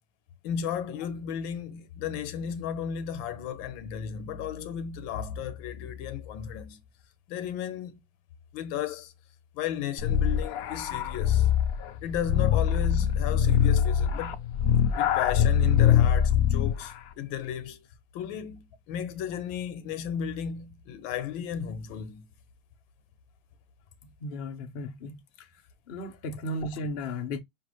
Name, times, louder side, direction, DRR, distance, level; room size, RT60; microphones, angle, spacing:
voice 1, 0.4-6.8 7.3-8.0 8.5-9.1 9.5-11.5 12.0-14.4 14.9-17.9 18.1-22.3, left 9 dB, 90° left, 1.5 m, -34 dB
sound 1, 10.0-16.9, left 9 dB, 70° left, 0.8 m, -23 dB
voice 2, 24.2-25.5 25.9-27.4, left 1 dB, 45° left, 0.8 m, -35 dB
6.0 x 2.5 x 3.0 m
omnidirectional pair, 2.1 m